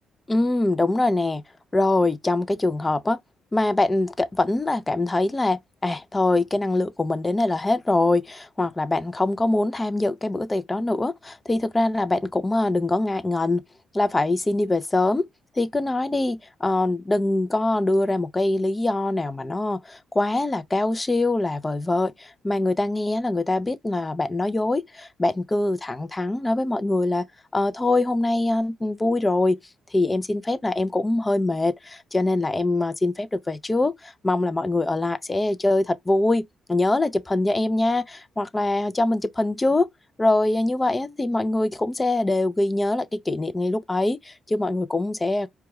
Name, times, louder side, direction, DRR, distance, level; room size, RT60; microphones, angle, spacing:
voice 1, 0.3-1.4 1.7-3.2 3.5-13.6 13.9-15.3 15.6-27.3 27.5-29.6 29.9-36.4 36.7-39.9 40.2-45.5, left 2 dB, 20° left, 0.4 m, -23 dB
4.7 x 2.3 x 3.0 m
cardioid pair, 90°, 0 cm